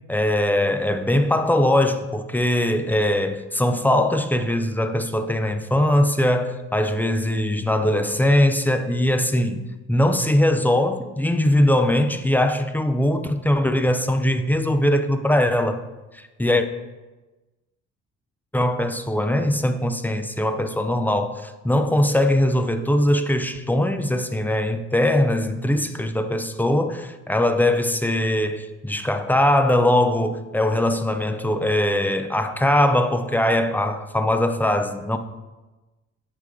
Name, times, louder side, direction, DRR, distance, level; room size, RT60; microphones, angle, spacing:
voice 1, 0.1-15.8 16.1-16.7 18.5-35.2, left 1 dB, 5° left, 0.5 m, -21 dB
8.0 x 5.0 x 3.6 m
cardioid pair, 90°, 30 cm